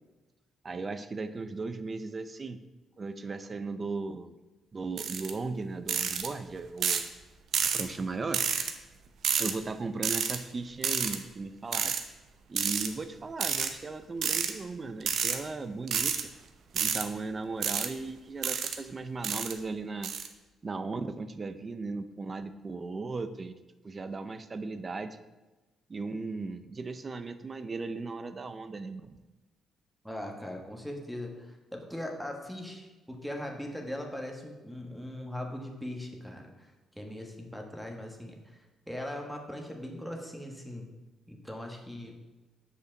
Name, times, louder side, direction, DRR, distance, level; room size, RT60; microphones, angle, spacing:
voice 1, 0.6-2.6 3.0-4.3 4.7-7.0 7.7-8.5 9.4-11.9 12.5-16.2 16.7-20.1 20.6-23.5 23.8-25.2 25.9-29.1, right 3 dB, 35° right, 11 dB, 0.5 m, -37 dB
sound 1, 5.0-5.3 5.9-6.3 6.8-7.1 7.5-7.8 8.3-8.7 9.2-9.5 10.0-10.4 10.8-11.2 11.7-12.0 12.6-12.9 13.4-13.7 14.2-14.5 15.0-15.4 15.9-16.2 16.8-17.0 17.6-17.9 18.4-18.8 19.2-19.5 20.0-20.3, right 7 dB, 65° right, 0.7 m, -29 dB
voice 2, 30.0-40.9 41.3-42.2, left 1 dB, ahead, 2 dB, 1.4 m, -40 dB
6.7 x 5.1 x 6.4 m, 1.2 s
cardioid pair, 90°, 0 cm